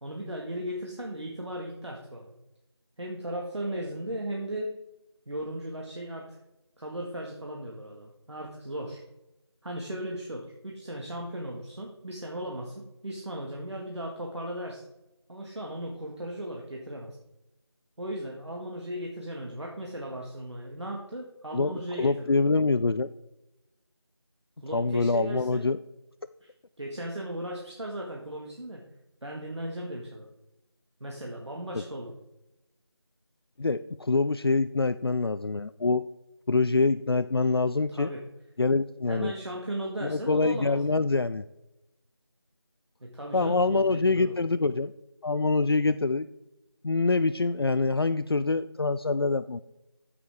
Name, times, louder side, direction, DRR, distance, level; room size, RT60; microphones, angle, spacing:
voice 1, 0.0-2.3 3.0-4.7 5.3-6.3 6.8-9.0 9.6-14.8 15.3-17.2 18.0-22.4 24.6-25.6 26.4-26.5 26.8-28.8 29.2-30.3 31.0-32.2 37.9-38.2 39.1-41.1 43.0-44.4, right 1 dB, 80° right, -1 dB, 1.9 m, -36 dB
voice 2, 21.5-23.1 24.7-25.8 33.6-36.1 36.5-38.1 38.6-39.3 40.0-41.4 43.3-44.9 45.2-46.3 46.8-49.6, left 3 dB, 60° left, 13 dB, 0.4 m, -25 dB
9.6 x 8.4 x 3.6 m, 0.94 s
figure-of-eight pair, 180°, 14 cm